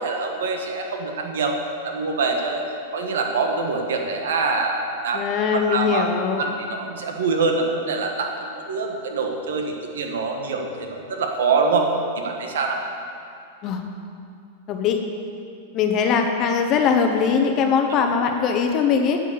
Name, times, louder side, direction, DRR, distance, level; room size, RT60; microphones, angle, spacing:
voice 1, 0.0-1.6 1.8-2.6 2.9-5.2 5.5-6.1 6.4-11.9 12.2-12.8, right 4 dB, 90° right, 2 dB, 1.4 m, -25 dB
voice 2, 5.1-6.4 13.6-13.8 14.7-15.0 15.7-19.2, left 6 dB, 35° left, 4 dB, 0.8 m, -21 dB
9.3 x 8.2 x 6.8 m, 2.5 s
supercardioid pair, 145°, 0 cm